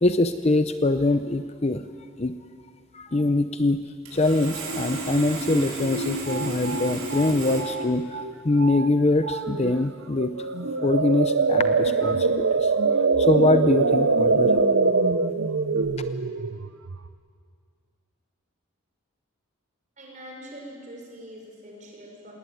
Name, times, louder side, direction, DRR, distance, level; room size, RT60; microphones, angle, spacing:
voice 1, 0.0-1.8 2.2-2.3 2.9-3.8 4.1-10.3 10.8-12.7 13.2-14.6, left 2 dB, 30° left, 10 dB, 0.6 m, -23 dB
Sawing, 4.1-7.6, right 2 dB, 80° right, 5.6 m, -32 dB
sound 1, 5.5-5.6 5.8-8.3 8.6-8.9 9.2-9.7 10.2-17.1, right 4 dB, 65° right, 0.8 m, -24 dB
voice 2, 20.0-22.3, equal, 35° right, -1 dB, 5.5 m, -43 dB
19.5 x 19.0 x 9.3 m, 2.2 s
head